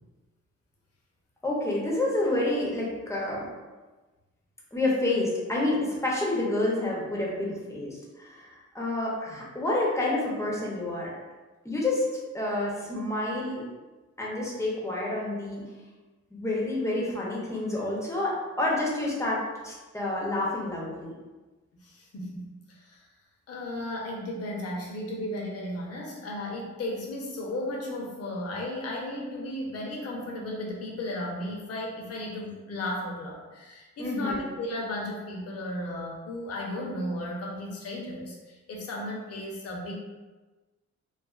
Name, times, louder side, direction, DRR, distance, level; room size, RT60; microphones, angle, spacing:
voice 1, 1.4-3.5 4.7-11.1 11.6-12.0 12.3-13.7 14.2-15.6 16.3-21.1 34.0-34.4, left 2 dB, 10° left, -4 dB, 0.6 m, -29 dB
voice 2, 21.7-23.1 23.5-39.9, left 1 dB, 55° left, -2 dB, 0.7 m, -35 dB
2.4 x 2.3 x 2.3 m, 1.2 s
cardioid pair, 120°, 29 cm